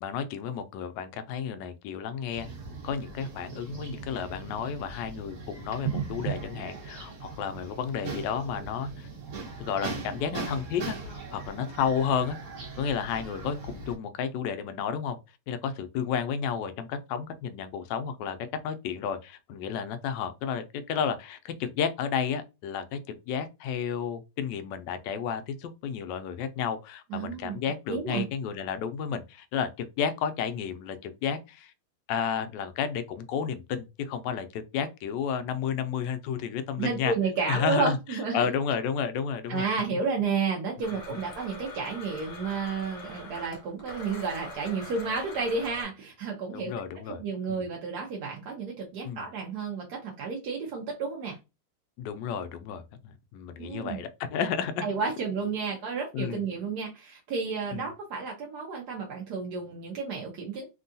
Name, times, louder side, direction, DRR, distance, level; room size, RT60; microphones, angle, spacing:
voice 1, 0.0-2.5 2.8-9.1 9.6-12.4 12.8-15.2 15.5-18.4 18.6-31.7 32.1-37.1 37.5-38.0 38.3-39.6 41.1-41.2 46.5-47.2 47.5-47.6 49.0-49.2 52.0-54.9 56.1-56.4 57.7-57.9, left 7 dB, 75° left, 1.0 m, -32 dB
sound 1, 2.3-13.9, right 5 dB, 45° right, 1.2 m, -39 dB
voice 2, 27.1-27.6 27.9-28.2 36.8-38.5 39.5-46.7 47.1-51.4 53.6-54.0 54.8-60.7, right 5 dB, 70° right, 1.0 m, -31 dB
Domestic sounds home sounds, 40.8-45.8, left 2 dB, 55° left, 0.9 m, -43 dB
3.6 x 2.3 x 2.6 m
omnidirectional pair, 2.4 m